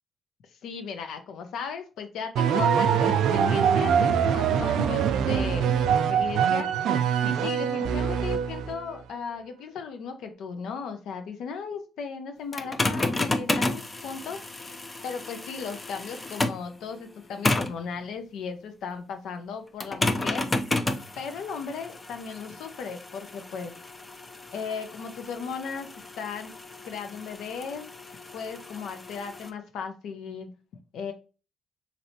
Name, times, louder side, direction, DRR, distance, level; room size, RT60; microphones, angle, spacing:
voice 1, 0.6-6.7 7.2-14.4 15.0-20.5 21.2-23.7 24.5-25.9 26.2-26.5 26.8-27.8 28.3-30.5 30.9-31.1, left 6 dB, 80° left, 7 dB, 0.6 m, -36 dB
sound 1, 2.4-8.8, right 7 dB, 80° right, 0.3 m, -23 dB
sound 2, 12.5-16.7 17.4-17.8 19.8-29.5, left 2 dB, 25° left, 0.4 m, -32 dB
3.2 x 2.6 x 2.7 m, 0.34 s
cardioid pair, 90°, 0 cm